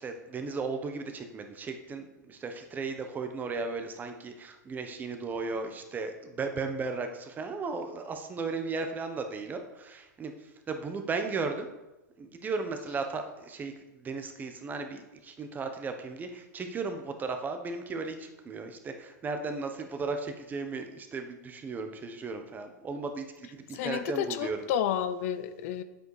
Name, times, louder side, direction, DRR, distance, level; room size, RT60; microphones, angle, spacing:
voice 1, 0.0-11.7 12.2-24.6, right 4 dB, 20° right, 6 dB, 1.1 m, -36 dB
voice 2, 23.7-25.8, left 9 dB, 55° left, 12 dB, 0.7 m, -31 dB
9.2 x 8.0 x 4.9 m, 0.99 s
hypercardioid pair, 130°, 10 cm